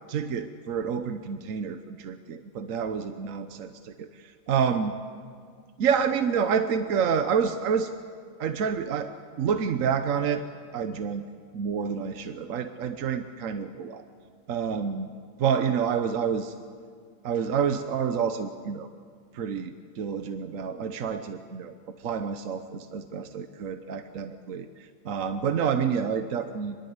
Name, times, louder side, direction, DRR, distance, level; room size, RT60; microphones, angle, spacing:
voice 1, 0.1-4.9 5.8-7.9 8.4-9.1 9.4-10.4 10.7-11.3 11.5-14.0 14.5-15.1 15.4-16.5 17.2-18.9 19.3-26.8, right 7 dB, 55° right, 9 dB, 1.0 m, -28 dB
25.0 x 21.5 x 8.0 m, 2.1 s
omnidirectional pair, 2.2 m